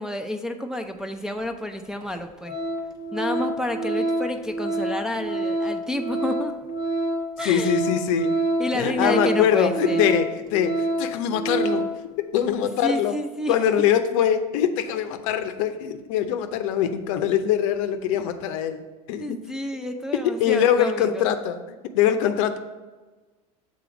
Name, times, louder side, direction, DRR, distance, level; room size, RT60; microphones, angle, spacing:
voice 1, 0.0-2.6 3.1-6.5 7.4-7.8 8.6-10.0 12.8-13.7 19.2-21.2, left 1 dB, 5° right, 3 dB, 0.4 m, -30 dB
Organ, 1.4-1.5 2.0-2.2 2.4-12.0 12.3-12.5, right 2 dB, 20° right, 1.0 m, -27 dB
voice 2, 7.4-8.3 8.7-11.9 12.3-13.1 13.5-18.8 19.1-19.4 20.4-21.6 21.9-22.6, left 9 dB, 60° left, 9 dB, 0.6 m, -23 dB
6.9 x 3.9 x 5.0 m, 1.2 s
hypercardioid pair, 90°, 19 cm